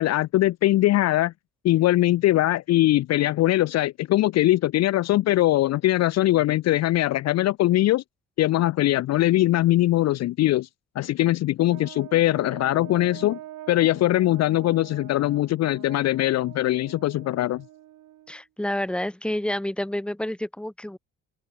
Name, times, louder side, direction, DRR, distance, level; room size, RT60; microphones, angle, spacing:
voice 1, 0.0-1.3 1.6-8.0 8.4-10.7 11.0-13.4 13.7-17.6, left 15 dB, 60° left, 0.4 m, -21 dB
Brass instrument, 11.7-18.4, right 14 dB, 80° right, 2.6 m, -44 dB
voice 2, 18.3-21.0, left 1 dB, 5° left, 1.2 m, -29 dB
open air
cardioid pair, 90°, 30 cm